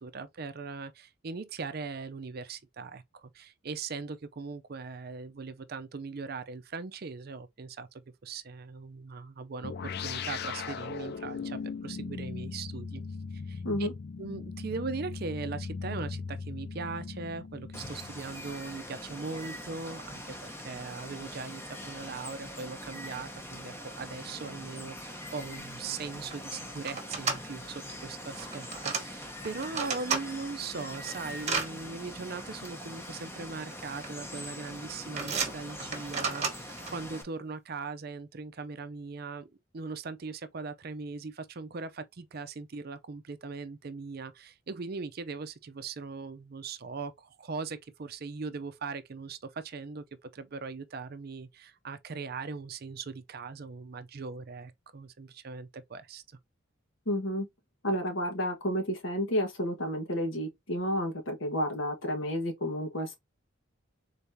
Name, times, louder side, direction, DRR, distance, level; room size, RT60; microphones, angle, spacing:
voice 1, 0.0-13.0 13.3-13.9 14.2-56.2, right 4 dB, 50° right, 0.5 m, -40 dB
sound 1, 9.6-18.5, left 5 dB, 50° left, 0.4 m, -38 dB
Water, 17.7-37.2, left 1 dB, 10° left, 0.8 m, -43 dB
sound 2, 25.7-25.8 26.0-26.4 26.8-27.4 28.3-29.0 29.4-30.2 30.7-31.7 32.6-32.7 33.7-34.1 34.4-34.7 35.2-36.9, right 5 dB, 35° right, 1.1 m, -33 dB
voice 2, 57.1-57.5 57.8-63.2, equal, 70° left, 1.3 m, -31 dB
4.0 x 3.5 x 2.7 m
head